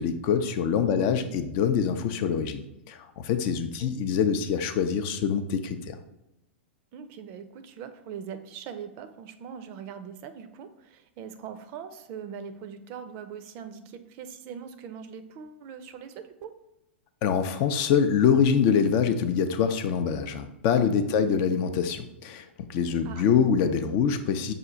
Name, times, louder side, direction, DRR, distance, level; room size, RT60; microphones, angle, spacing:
voice 1, 0.0-6.0 17.2-24.5, left 7 dB, 45° left, 9 dB, 0.5 m, -25 dB
voice 2, 0.8-1.3 3.8-3.9 6.9-16.5 21.2-21.6 23.0-23.3, right 7 dB, 40° right, 9 dB, 0.5 m, -41 dB
5.7 x 2.4 x 3.9 m, 0.93 s
figure-of-eight pair, 100°, 6 cm